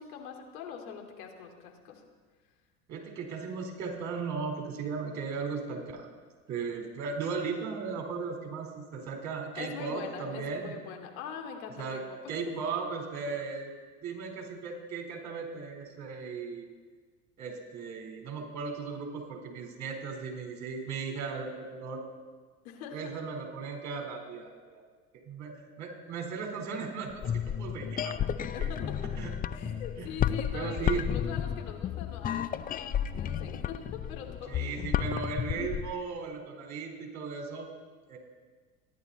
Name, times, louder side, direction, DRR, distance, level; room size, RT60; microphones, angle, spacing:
voice 1, 0.0-2.0 8.9-9.1 9.5-12.0 22.6-23.1 28.5-29.0 29.5-34.7, left 7 dB, 70° left, 3 dB, 2.8 m, -43 dB
voice 2, 2.9-6.1 6.5-10.7 11.8-12.0 12.3-13.7 14.0-16.7 17.4-22.0 22.9-24.8 25.3-27.3 27.6-28.7 29.2-29.3 29.6-29.7 30.0-30.1 30.5-31.0 34.5-37.7 38.1-38.2, right 5 dB, 40° right, 2 dB, 4.2 m, -37 dB
sound 1, 27.1-35.9, left 9 dB, 20° left, 0.4 m, -32 dB
29.5 x 11.0 x 4.2 m, 1.5 s
hypercardioid pair, 80°, 43 cm